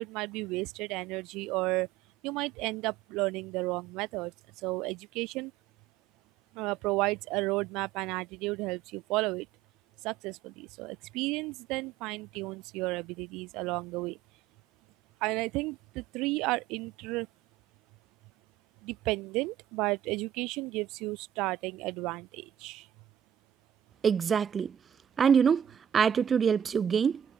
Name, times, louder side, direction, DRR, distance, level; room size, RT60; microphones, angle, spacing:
voice 1, 0.0-1.9 2.2-4.3 4.6-5.5 6.6-9.5 10.0-14.2 15.2-17.3 18.8-22.8, right 22 dB, 55° right, 1.1 m, -33 dB
voice 2, 24.0-24.8 25.2-25.7 25.9-27.2, right 7 dB, 30° right, 0.6 m, -24 dB
figure-of-eight pair, 65°, 0 cm